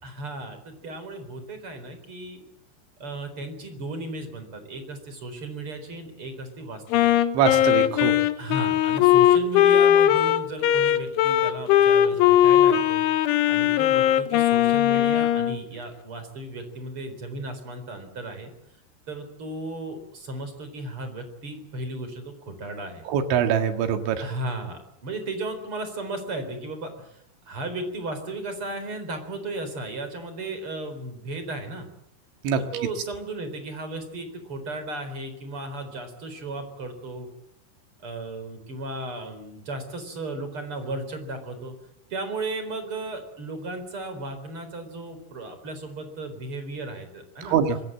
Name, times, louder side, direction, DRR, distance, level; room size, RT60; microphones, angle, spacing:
voice 1, 0.0-2.4 3.0-7.1 8.4-13.0 13.5-18.5 19.1-23.0 24.2-27.2 27.5-31.9 32.6-37.3 38.0-41.7 42.1-47.6, right 2 dB, 30° right, 8 dB, 4.5 m, -35 dB
Wind instrument woodwind instrument, 6.9-15.6, left 11 dB, 80° left, 3.5 m, -19 dB
voice 2, 7.4-8.1 23.1-24.2 32.4-32.6 47.5-47.8, right 8 dB, 75° right, 7 dB, 4.1 m, -23 dB
25.5 x 22.0 x 7.8 m, 0.75 s
omnidirectional pair, 5.6 m